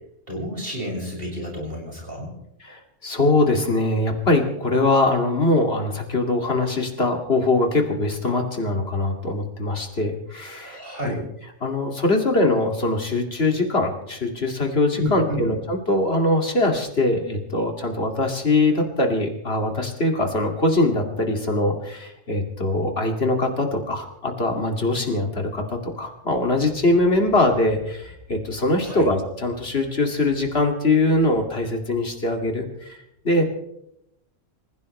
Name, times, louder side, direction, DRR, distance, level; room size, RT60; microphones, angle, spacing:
voice 1, 0.3-2.3 10.6-11.2 15.0-15.5 28.8-29.1, equal, 45° right, -2 dB, 6.7 m, -30 dB
voice 2, 2.6-11.2 11.6-33.0 33.2-33.4, left 2 dB, 50° left, 3 dB, 2.7 m, -22 dB
27.5 x 16.0 x 3.3 m, 0.80 s
omnidirectional pair, 1.3 m